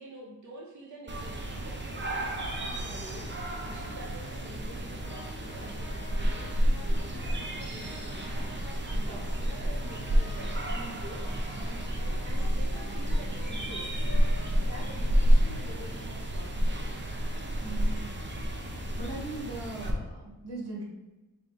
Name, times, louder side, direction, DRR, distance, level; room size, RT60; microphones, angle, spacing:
voice 1, 0.0-14.2 14.5-16.8, right 1 dB, 45° right, -4 dB, 1.3 m, -47 dB
sound 1, 1.1-19.9, equal, 25° right, 0.9 m, -30 dB
Brass instrument, 5.0-10.7 11.2-16.0, left 2 dB, 80° left, 1.1 m, -50 dB
voice 2, 17.6-18.2 18.9-20.8, right 2 dB, 65° right, -3 dB, 1.5 m, -39 dB
6.7 x 2.4 x 3.2 m, 1.1 s
cardioid pair, 45°, 41 cm